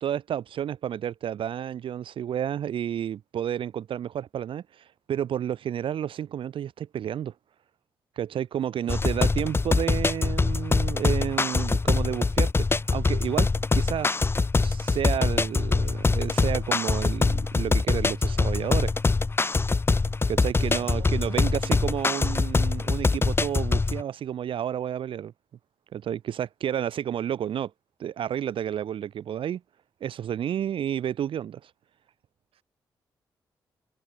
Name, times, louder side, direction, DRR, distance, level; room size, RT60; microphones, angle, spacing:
voice 1, 0.0-7.3 8.2-13.5 13.7-14.1 14.6-18.9 20.3-25.3 25.9-27.7 28.0-29.6 30.0-31.7, right 10 dB, 65° right, 0.4 m, -31 dB
voice 2, 8.8-9.5 20.6-22.4 32.5-32.6, right 11 dB, 80° right, 4.6 m, -49 dB
sound 1, 8.9-24.0, left 3 dB, 25° left, 0.5 m, -24 dB
supercardioid pair, 50°, 10 cm